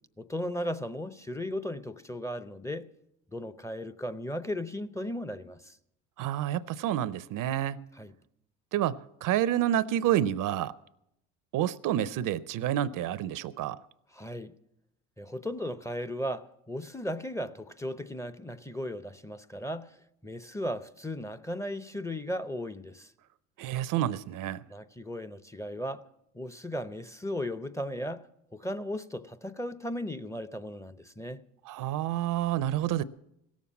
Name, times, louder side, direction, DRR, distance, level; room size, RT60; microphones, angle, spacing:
voice 1, 0.2-2.9 3.3-5.8 8.0-8.1 14.1-14.5 15.2-20.0 20.2-23.1 24.7-26.1 26.3-28.2 28.5-31.4, equal, 10° left, 0.6 m, -36 dB
voice 2, 6.2-7.9 8.7-10.7 11.5-13.8 23.6-24.6 31.6-33.0, right 12 dB, 60° right, 0.6 m, -29 dB
17.0 x 7.3 x 8.4 m
supercardioid pair, 75°, 37 cm